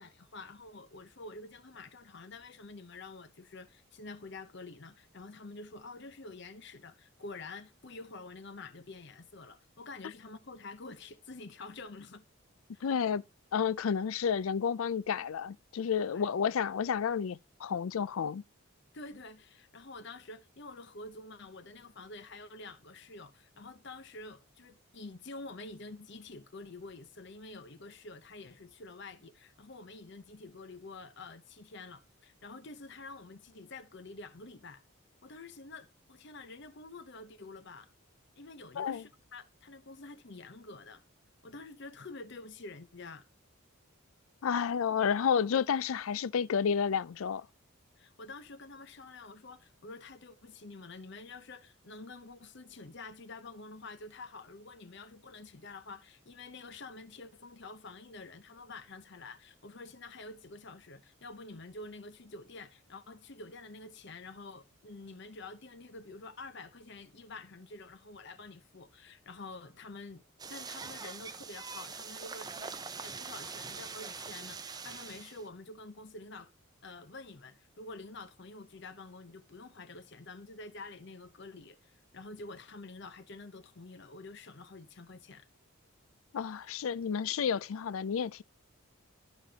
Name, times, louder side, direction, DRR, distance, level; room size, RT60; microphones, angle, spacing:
voice 1, 0.0-12.2 12.7-12.9 16.1-16.3 18.9-34.8 35.2-37.9 38.4-41.0 41.4-43.3 48.0-76.5 76.8-85.5, left 3 dB, 50° left, 0.8 m, -48 dB
voice 2, 12.8-13.2 13.5-18.4 38.8-39.0 44.4-47.5 86.3-88.4, left 7 dB, 75° left, 0.4 m, -31 dB
sound 1, 70.4-75.5, right 5 dB, 20° right, 0.5 m, -43 dB
13.5 x 5.1 x 2.8 m
head